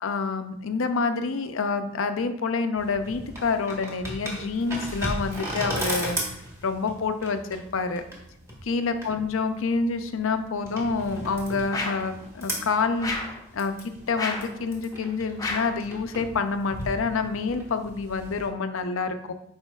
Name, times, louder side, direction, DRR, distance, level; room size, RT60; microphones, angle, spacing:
voice 1, 0.0-6.2 6.6-8.0 8.7-19.3, left 4 dB, 70° left, 8 dB, 0.5 m, -27 dB
sound 1, 2.8-18.5, right 1 dB, 10° right, 1.2 m, -37 dB
sound 2, 11.7-12.1 13.0-13.4 14.2-14.5 15.4-15.8, left 3 dB, 15° left, 0.6 m, -31 dB
8.7 x 4.8 x 2.3 m, 0.78 s
head